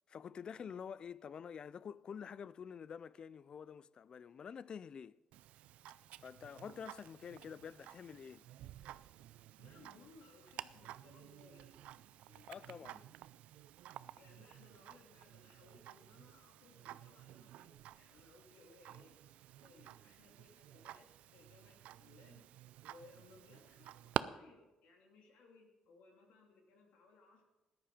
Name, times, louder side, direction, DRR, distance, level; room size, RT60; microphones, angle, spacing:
voice 1, 0.1-5.2 6.2-8.5 12.5-13.0, left 7 dB, 45° left, 0.4 m, -48 dB
Tick-tock, 5.3-24.2, right 14 dB, 85° right, 0.4 m, -50 dB
voice 2, 9.6-11.9 12.2-13.1 14.2-19.1 19.6-22.4 22.9-27.4, left 3 dB, 85° left, 3.0 m, -63 dB
14.0 x 10.5 x 5.0 m
cardioid pair, 105°, 2 cm